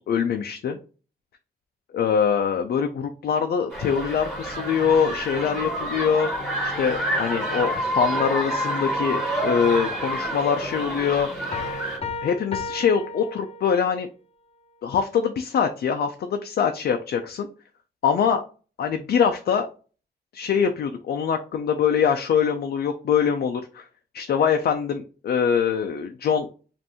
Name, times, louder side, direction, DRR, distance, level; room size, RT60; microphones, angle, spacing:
voice 1, 0.1-0.8 1.9-6.3 6.6-11.3 12.2-14.1 14.8-17.5 18.0-18.4 18.8-19.6 20.3-23.8 24.1-26.5, left 7 dB, 80° left, 5 dB, 0.5 m, -23 dB
sound 1, 3.7-12.0, right 1 dB, ahead, 1.9 m, -28 dB
sound 2, 11.5-14.0, left 4 dB, 35° left, 0.7 m, -34 dB
5.3 x 2.6 x 2.9 m, 0.37 s
cardioid pair, 100°, 16 cm